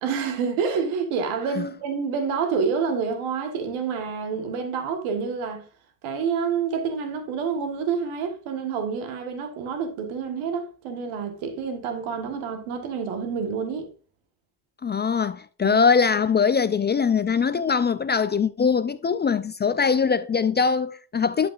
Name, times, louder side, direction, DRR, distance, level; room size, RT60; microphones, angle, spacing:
voice 1, 0.0-5.7 6.0-13.9 15.6-15.8, right 6 dB, 90° right, 1.5 m, -28 dB
voice 2, 14.8-21.5, left 6 dB, 25° left, 0.3 m, -22 dB
11.0 x 5.0 x 2.4 m
supercardioid pair, 75°, 47 cm